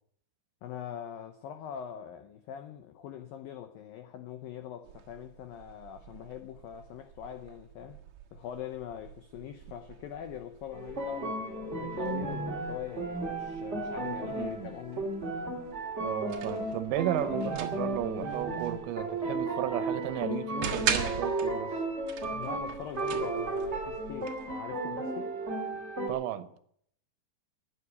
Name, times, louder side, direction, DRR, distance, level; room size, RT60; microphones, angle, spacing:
voice 1, 0.6-8.0 8.3-15.1 22.3-25.3, left 10 dB, 90° left, 2.0 m, -42 dB
sound 1, 4.8-24.6, right 8 dB, 55° right, 2.2 m, -42 dB
sound 2, 10.7-26.1, right 2 dB, 30° right, 1.3 m, -34 dB
voice 2, 14.2-14.7 16.0-21.8 26.1-26.5, right 12 dB, 80° right, 3.1 m, -34 dB
13.0 x 9.6 x 9.5 m
omnidirectional pair, 5.3 m